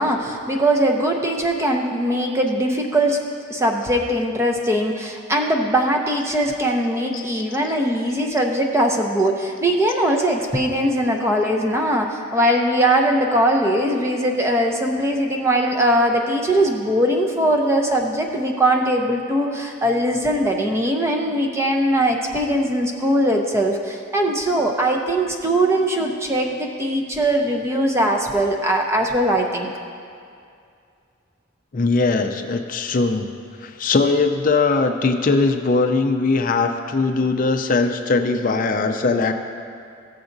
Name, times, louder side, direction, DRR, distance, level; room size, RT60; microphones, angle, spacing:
voice 1, 0.0-3.2 3.5-29.7, right 1 dB, 15° right, 2 dB, 0.6 m, -20 dB
voice 2, 31.7-33.3 33.6-39.3, left 3 dB, 45° left, 6 dB, 0.4 m, -20 dB
14.5 x 7.0 x 2.6 m, 2.4 s
head